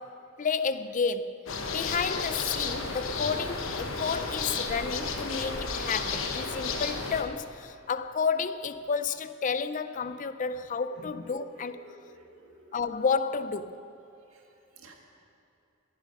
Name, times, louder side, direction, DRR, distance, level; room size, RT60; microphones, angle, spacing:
voice 1, 0.0-1.4 1.7-11.8 12.7-13.8, left 5 dB, 40° left, 0.4 m, -31 dB
sound 1, 1.5-7.2, left 4 dB, 75° left, 1.0 m, -32 dB
voice 2, 11.6-12.8 14.3-14.4 14.7-15.0, right 1 dB, 80° right, 1.8 m, -53 dB
21.0 x 7.6 x 5.3 m
head